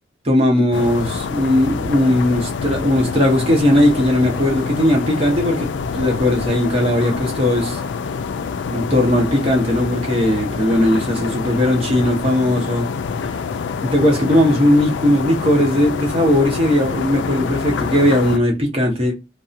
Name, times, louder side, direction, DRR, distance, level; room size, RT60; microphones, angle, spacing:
voice 1, 0.2-7.8 8.7-12.9 13.8-19.1, left 1 dB, 30° right, 0.9 m, -18 dB
sound 1, 0.7-18.4, left 5 dB, 80° left, 0.3 m, -26 dB
2.7 x 2.1 x 2.5 m
head